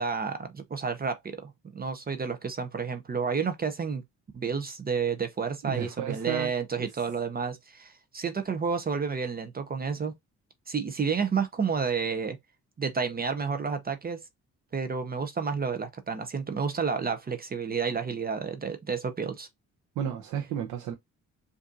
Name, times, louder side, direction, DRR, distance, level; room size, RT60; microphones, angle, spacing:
voice 1, 0.0-4.0 4.3-10.1 10.7-12.4 12.8-14.2 14.7-19.5, right 5 dB, 30° right, 0.7 m, -30 dB
voice 2, 5.6-6.5 6.8-6.9 20.0-20.9, right 9 dB, 80° right, 0.8 m, -32 dB
4.9 x 2.7 x 2.5 m
cardioid pair, 90°, 30 cm